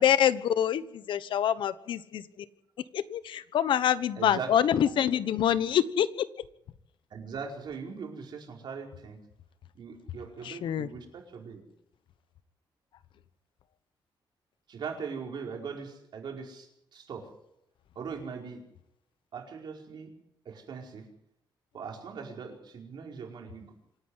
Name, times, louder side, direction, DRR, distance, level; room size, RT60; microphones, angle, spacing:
voice 1, 0.0-2.5 2.9-6.3 10.4-10.9, left 10 dB, 90° left, 14 dB, 1.1 m, -26 dB
voice 2, 4.2-4.5 5.0-5.1 7.1-9.2 9.7-11.6 14.7-17.3 17.9-18.6 19.3-20.1 20.4-21.1 21.7-23.7, right 6 dB, 65° right, 1 dB, 4.9 m, -40 dB
27.0 x 10.0 x 9.7 m, 0.79 s
wide cardioid pair, 145°, 8 cm